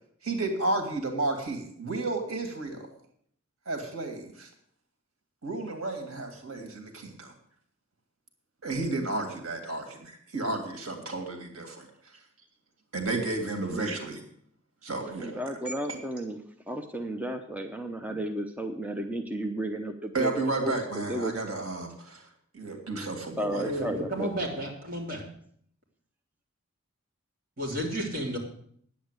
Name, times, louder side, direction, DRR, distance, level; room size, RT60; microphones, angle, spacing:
voice 1, 0.2-2.9 3.7-4.5 5.4-7.3 8.6-11.9 12.9-14.2 14.8-15.4 15.9-16.0 20.1-22.3 22.5-23.7, right 2 dB, 90° right, 4 dB, 2.4 m, -32 dB
voice 2, 15.2-16.4 16.7-20.3 20.6-21.3 23.4-24.3, right 1 dB, 5° right, 4 dB, 0.8 m, -33 dB
voice 3, 23.6-25.2 27.6-28.4, equal, 45° right, -2 dB, 3.5 m, -32 dB
10.0 x 8.4 x 8.1 m, 0.65 s
head